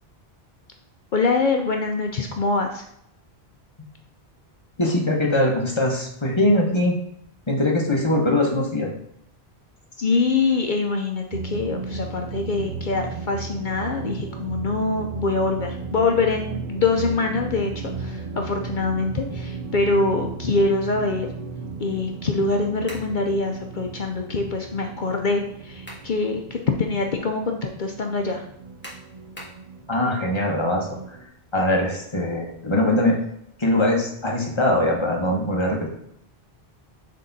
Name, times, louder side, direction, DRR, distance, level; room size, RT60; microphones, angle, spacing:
voice 1, 1.1-2.8 10.0-21.3 21.8-28.5, left 3 dB, 55° left, 3 dB, 0.7 m, -24 dB
voice 2, 4.8-6.9 7.5-8.9 29.9-31.2 31.5-33.2 33.6-35.9, left 1 dB, 25° left, 0 dB, 1.1 m, -22 dB
sound 1, 11.3-31.3, right 4 dB, 55° right, 0.7 m, -35 dB
sound 2, 22.9-23.2 25.5-26.1 26.6-26.7 28.8-29.6, equal, 10° left, 1.6 m, -41 dB
6.6 x 3.7 x 4.0 m, 0.72 s
omnidirectional pair, 1.1 m